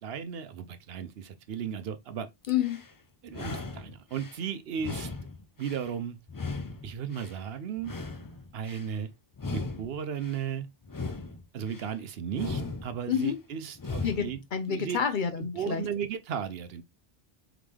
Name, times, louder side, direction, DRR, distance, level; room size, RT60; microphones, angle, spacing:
voice 1, 0.0-2.3 3.2-5.1 5.6-6.2 6.8-7.9 8.5-9.1 9.5-10.7 11.5-14.4 14.7-15.0 15.4-16.8, right 8 dB, 70° right, 0.8 m, -35 dB
sound 1, 2.4-2.9 3.3-4.4 4.8-5.9 6.3-7.4 7.8-8.9 9.3-10.4 10.8-11.9 12.3-13.3 13.8-14.4, left 3 dB, 30° left, 0.4 m, -38 dB
voice 2, 2.5-2.8 13.1-13.4 14.0-15.8, left 8 dB, 55° left, 0.7 m, -29 dB
3.8 x 3.6 x 3.2 m
omnidirectional pair, 1.1 m